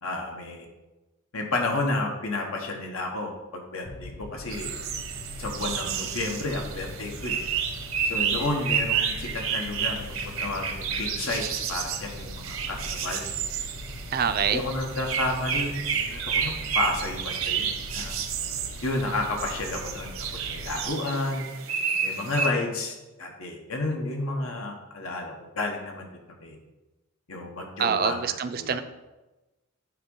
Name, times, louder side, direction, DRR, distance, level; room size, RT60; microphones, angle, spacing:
voice 1, 0.0-0.7 1.3-4.7 5.4-7.4 8.1-11.4 11.7-13.3 14.4-18.1 18.8-20.1 20.5-21.4 22.0-26.1 26.4-26.6 27.3-28.8, left 2 dB, 85° left, 2 dB, 1.3 m, -31 dB
sound 1, 3.8-20.9, left 1 dB, 45° left, 0.6 m, -41 dB
sound 2, 4.5-22.5, right 7 dB, 70° right, 0.9 m, -31 dB
voice 2, 14.1-14.6 27.8-28.8, right 7 dB, 45° right, 10 dB, 0.4 m, -25 dB
9.3 x 3.6 x 5.4 m, 1.1 s
head